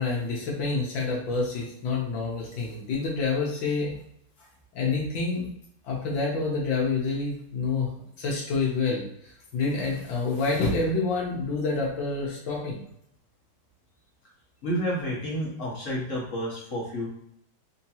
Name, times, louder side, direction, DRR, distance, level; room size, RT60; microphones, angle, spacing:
voice 1, 0.0-4.0 4.7-5.5 5.9-7.9 8.2-12.8, left 3 dB, 70° left, -3 dB, 1.5 m, -28 dB
voice 2, 14.6-17.1, equal, 45° left, -4 dB, 1.1 m, -30 dB
4.6 x 2.8 x 2.8 m, 0.75 s
omnidirectional pair, 2.4 m